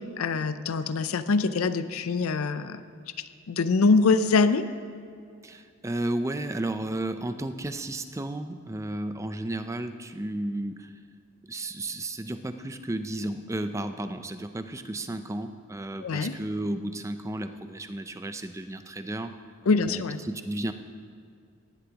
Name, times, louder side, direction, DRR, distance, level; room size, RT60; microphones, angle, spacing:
voice 1, 0.2-2.8 3.2-4.7 16.0-16.4 19.7-20.2, left 4 dB, 90° left, 12 dB, 0.5 m, -24 dB
voice 2, 5.4-10.9 11.5-19.4 19.9-20.7, right 1 dB, 15° right, 9 dB, 0.4 m, -33 dB
17.5 x 11.5 x 2.9 m, 2.3 s
head